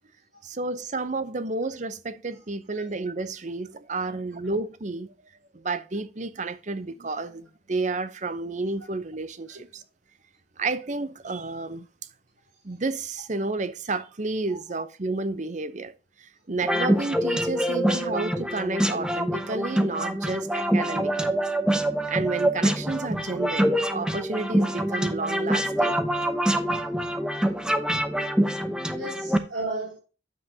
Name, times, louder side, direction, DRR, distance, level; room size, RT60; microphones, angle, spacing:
voice 1, 0.4-5.1 5.5-9.8 10.6-11.9 12.6-21.4 22.1-26.0, right 3 dB, 40° right, 0.7 m, -31 dB
sound 1, 16.6-29.4, right 1 dB, 5° right, 0.8 m, -25 dB
voice 2, 28.6-30.0, right 2 dB, 75° right, 2.9 m, -36 dB
9.3 x 7.5 x 2.8 m
head